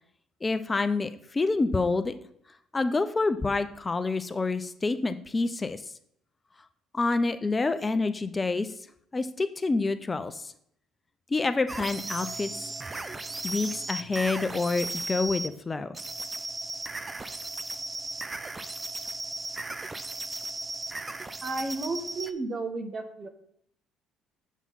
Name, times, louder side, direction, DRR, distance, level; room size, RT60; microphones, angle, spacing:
voice 1, 0.4-2.1 2.7-5.8 6.9-8.7 9.1-10.5 11.3-12.6 13.4-16.0, left 3 dB, 25° left, 11 dB, 0.6 m, -27 dB
sound 1, 11.7-15.5 15.9-22.3, right 2 dB, 25° right, 0.7 m, -36 dB
voice 2, 21.4-23.3, right 3 dB, 40° right, 8 dB, 1.3 m, -33 dB
7.2 x 7.2 x 4.1 m, 0.70 s
supercardioid pair, 65°, 0 cm